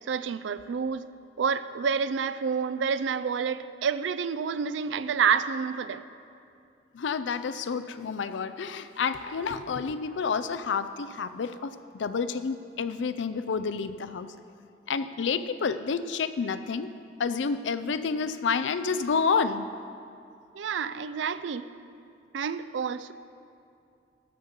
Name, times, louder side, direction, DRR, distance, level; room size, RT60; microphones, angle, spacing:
voice 1, 0.1-1.1 1.4-6.0 20.5-21.7 22.3-23.1, right 6 dB, 85° right, 14 dB, 0.4 m, -28 dB
voice 2, 6.9-14.3 14.9-16.9 17.2-19.7, left 5 dB, 85° left, 12 dB, 0.4 m, -29 dB
12.0 x 5.2 x 7.1 m, 2.5 s
head